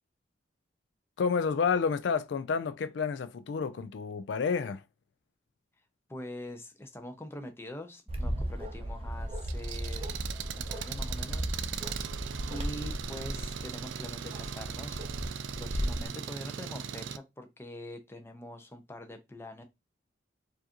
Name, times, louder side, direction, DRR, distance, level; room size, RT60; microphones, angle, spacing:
voice 1, 1.2-4.8, left 5 dB, 70° left, 0.4 m, -30 dB
voice 2, 6.1-10.1 10.6-11.9 12.5-15.0 15.5-19.6, left 1 dB, 15° left, 0.6 m, -44 dB
Bark, 8.1-16.1, equal, 30° right, 0.6 m, -36 dB
Engine, 9.4-17.2, right 7 dB, 80° right, 0.4 m, -39 dB
4.5 x 2.6 x 2.9 m
head